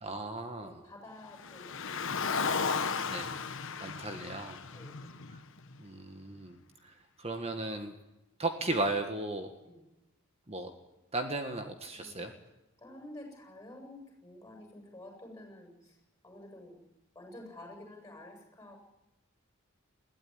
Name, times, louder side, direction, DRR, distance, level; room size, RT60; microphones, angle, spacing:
voice 1, 0.0-0.8 3.1-3.3 3.8-4.6 5.8-6.6 6.8-7.9 8.4-9.5 10.5-10.7 11.1-12.3, right 2 dB, 30° right, 5 dB, 1.8 m, -35 dB
voice 2, 0.6-3.1 4.7-5.2 9.6-9.8 11.9-12.3 12.8-16.0 16.2-16.8 17.1-18.8, left 1 dB, 15° left, 2 dB, 7.8 m, -51 dB
Car, 1.4-5.8, left 5 dB, 60° left, 1.2 m, -34 dB
21.5 x 16.0 x 9.8 m, 0.97 s
head